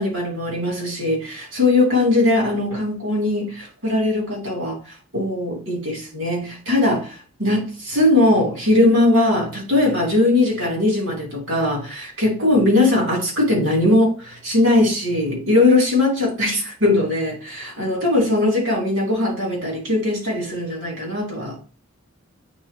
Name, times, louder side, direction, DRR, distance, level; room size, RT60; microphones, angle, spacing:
voice 1, 0.0-4.8 5.1-21.6, left 2 dB, 65° right, 3.2 m, -20 dB
8.7 x 3.9 x 2.9 m
head